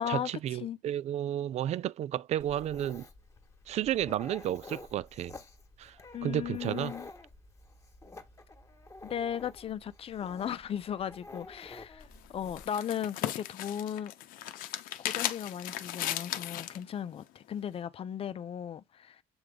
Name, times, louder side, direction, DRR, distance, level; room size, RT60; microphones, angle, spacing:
voice 1, 0.0-3.1 3.7-5.4 5.8-6.0 6.2-6.9, right 11 dB, 50° right, 0.4 m, -32 dB
Dog, 2.4-12.6, left 2 dB, 20° left, 1.6 m, -50 dB
voice 2, 6.1-7.1 9.0-14.1 15.0-19.2, left 9 dB, 40° left, 0.7 m, -36 dB
sound 1, 12.0-16.8, left 13 dB, 80° left, 0.8 m, -36 dB
7.9 x 3.5 x 3.7 m
cardioid pair, 115°, 14 cm